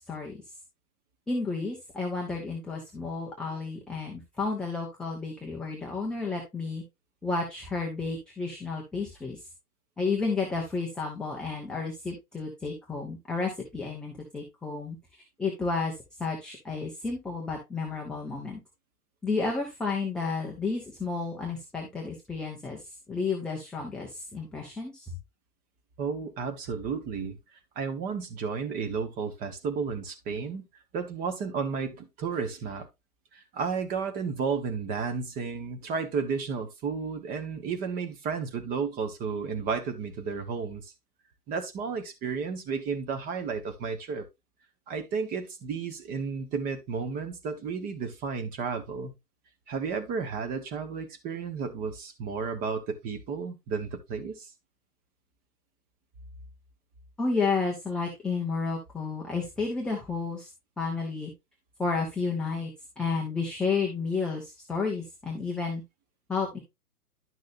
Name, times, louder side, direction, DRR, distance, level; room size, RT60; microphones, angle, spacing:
voice 1, 0.1-0.4 1.3-6.8 7.2-9.4 10.0-15.0 15.4-18.6 19.2-22.8 23.1-25.1 57.2-60.5 60.8-61.3 61.8-65.8 66.3-66.6, left 4 dB, ahead, 0.6 m, -31 dB
voice 2, 26.0-27.4 27.7-30.7 30.9-32.9 33.3-40.9 41.5-44.3 44.9-49.1 49.7-54.5, right 5 dB, 20° right, 1.3 m, -32 dB
11.0 x 6.2 x 2.6 m
figure-of-eight pair, 125°, 47 cm